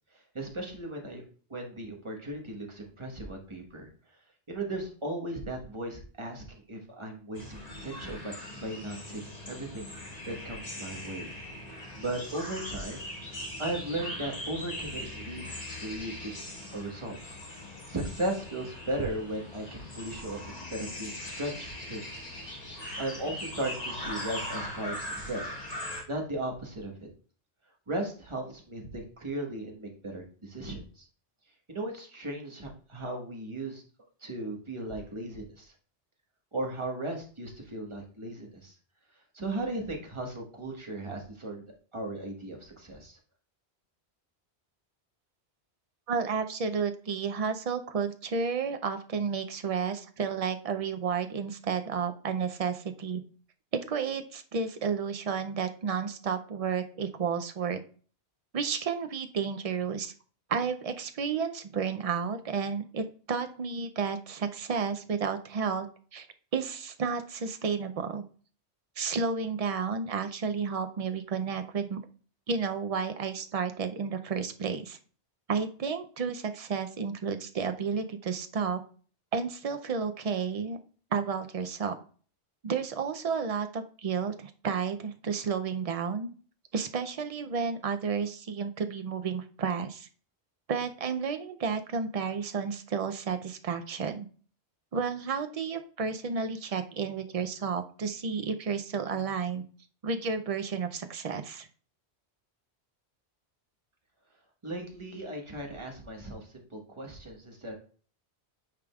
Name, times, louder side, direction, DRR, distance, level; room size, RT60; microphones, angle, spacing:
voice 1, 0.3-1.2 1.5-3.9 4.5-9.9 10.3-11.3 11.7-16.3 16.7-17.4 17.9-22.0 23.0-26.9 27.9-31.0 31.7-33.8 34.2-35.7 36.5-38.7 39.3-41.6 41.9-43.2 104.6-107.7, right 1 dB, 25° right, 1 dB, 1.4 m, -37 dB
sound 1, 7.3-26.0, left 1 dB, 35° left, 1.5 m, -40 dB
voice 2, 46.1-53.2 53.7-57.8 58.5-60.1 60.5-65.9 66.1-66.3 66.5-68.2 69.0-72.0 72.5-75.0 75.5-78.8 79.3-80.8 81.1-82.0 82.6-86.3 86.7-90.1 90.7-94.3 94.9-99.6 100.0-101.7, right 5 dB, 45° right, 8 dB, 0.5 m, -31 dB
9.2 x 5.0 x 2.3 m, 0.42 s
omnidirectional pair, 1.1 m